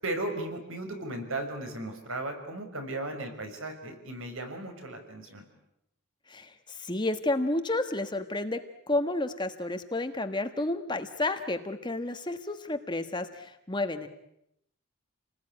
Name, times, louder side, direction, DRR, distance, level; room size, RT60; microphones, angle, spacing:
voice 1, 0.0-5.5, right 2 dB, 65° right, 5 dB, 5.8 m, -36 dB
voice 2, 6.3-8.6 8.9-14.1, left 2 dB, 20° left, 8 dB, 1.4 m, -31 dB
29.0 x 20.0 x 9.9 m, 0.79 s
head